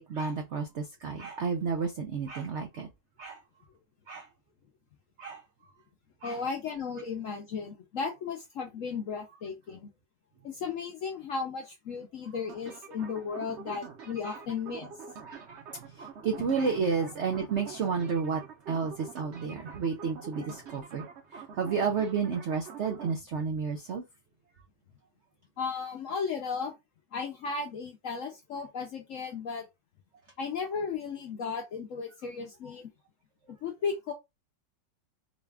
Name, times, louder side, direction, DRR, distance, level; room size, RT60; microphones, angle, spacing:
voice 1, 0.0-2.9 3.2-3.4 4.1-4.3 5.2-5.4 6.2-6.4 14.2-14.3 15.2-21.1 21.3-24.0, right 5 dB, 90° right, 0.6 m, -31 dB
voice 2, 6.2-9.9 10.4-14.9 17.0-17.1 25.6-26.7 27.1-29.6 30.4-32.9 33.6-34.1, left 5 dB, 70° left, 0.7 m, -35 dB
sound 1, 12.5-23.1, right 6 dB, 50° right, 0.8 m, -46 dB
3.9 x 2.4 x 3.3 m
omnidirectional pair, 1.9 m